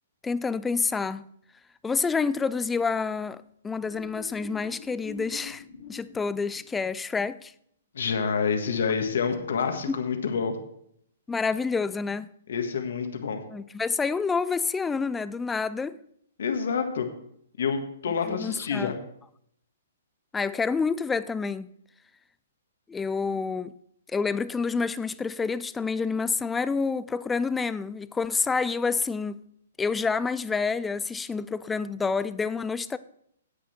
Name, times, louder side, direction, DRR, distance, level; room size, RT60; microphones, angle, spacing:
voice 1, 0.2-1.2 1.8-5.6 5.9-7.5 9.9-10.0 11.3-12.3 13.5-16.0 18.3-18.9 20.3-21.7 22.9-23.7 24.1-29.4 29.8-33.0, left 4 dB, 10° left, 0.3 m, -28 dB
sound 1, 3.9-7.1 9.2-9.7, left 7 dB, 50° left, 1.6 m, -44 dB
voice 2, 7.9-10.6 12.5-13.4 16.4-17.1 17.6-19.0, left 6 dB, 70° left, 1.6 m, -27 dB
9.8 x 8.4 x 4.3 m
hypercardioid pair, 140°, 0 cm